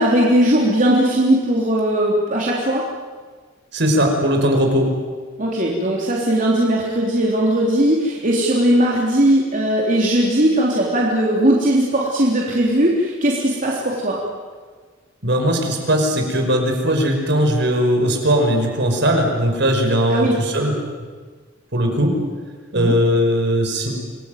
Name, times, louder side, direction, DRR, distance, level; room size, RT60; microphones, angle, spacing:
voice 1, 0.0-2.8 5.4-14.2 20.1-20.4 22.7-22.9, right 1 dB, 45° right, -4 dB, 3.6 m, -18 dB
voice 2, 3.7-4.9 15.2-20.8 21.7-22.2 22.7-24.0, equal, 65° right, 3 dB, 5.5 m, -18 dB
27.0 x 21.0 x 9.3 m, 1.5 s
head